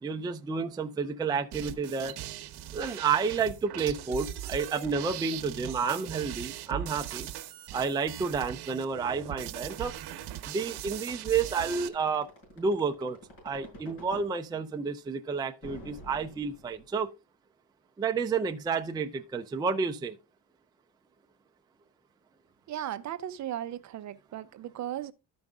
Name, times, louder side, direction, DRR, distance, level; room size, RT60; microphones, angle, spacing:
voice 1, 0.0-2.2 2.7-7.3 7.7-10.0 10.5-12.3 12.6-13.2 13.4-17.1 18.0-20.2, right 5 dB, 10° right, 0.4 m, -30 dB
sound 1, 1.5-11.9, right 12 dB, 75° right, 1.1 m, -40 dB
sound 2, 11.1-14.3 15.6-17.0, equal, 55° left, 6.7 m, -47 dB
voice 2, 22.7-25.1, right 11 dB, 45° right, 0.7 m, -36 dB
13.0 x 5.2 x 3.5 m
cardioid pair, 160°, 40 cm